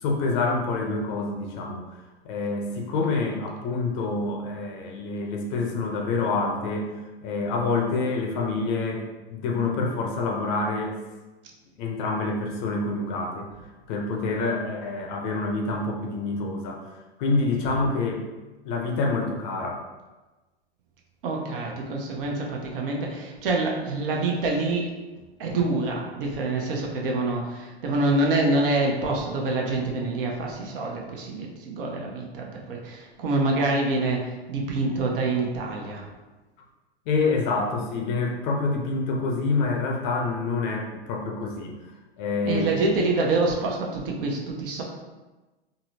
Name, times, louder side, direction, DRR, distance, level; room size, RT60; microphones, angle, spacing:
voice 1, 0.0-1.8 2.2-9.0 9.3-11.0 11.8-13.5 13.9-16.9 17.2-18.2 18.6-19.8 37.1-43.0, left 3 dB, 45° left, 1 dB, 0.6 m, -27 dB
voice 2, 21.2-24.9 25.4-36.1 42.4-44.8, right 2 dB, 55° right, 0 dB, 0.7 m, -26 dB
3.7 x 2.0 x 2.7 m, 1.2 s
hypercardioid pair, 105°, 32 cm